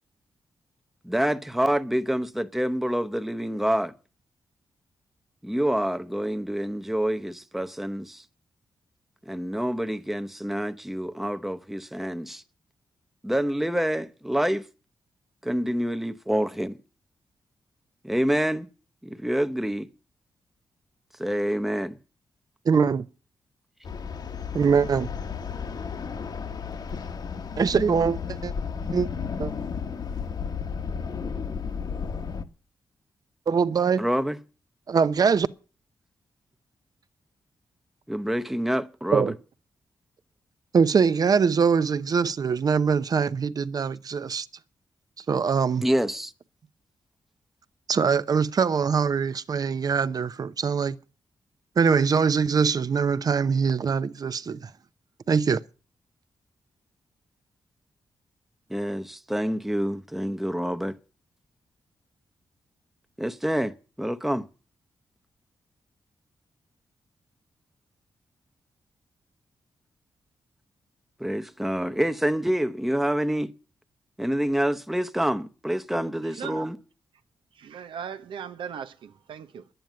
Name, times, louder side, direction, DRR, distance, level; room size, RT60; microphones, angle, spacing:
voice 1, 1.0-3.9 5.4-8.2 9.3-12.4 13.2-14.6 15.4-16.8 18.0-18.7 19.0-19.9 21.2-22.0 34.0-34.4 38.1-39.4 45.8-46.3 58.7-61.0 63.2-64.4 71.2-73.5 74.2-76.8, equal, 5° right, 0.9 m, -27 dB
voice 2, 22.7-23.1 24.5-25.1 27.6-28.5 28.9-29.1 29.4-29.5 33.5-34.0 34.9-35.5 39.1-39.3 40.7-44.5 45.3-45.8 47.9-51.0 51.8-54.7 55.3-55.6, right 6 dB, 50° right, 0.7 m, -23 dB
sound 1, 23.8-32.4, left 6 dB, 55° left, 1.3 m, -33 dB
voice 3, 76.2-76.7 77.5-79.7, right 8 dB, 85° right, 1.0 m, -38 dB
10.5 x 9.1 x 9.3 m
cardioid pair, 95°, 8 cm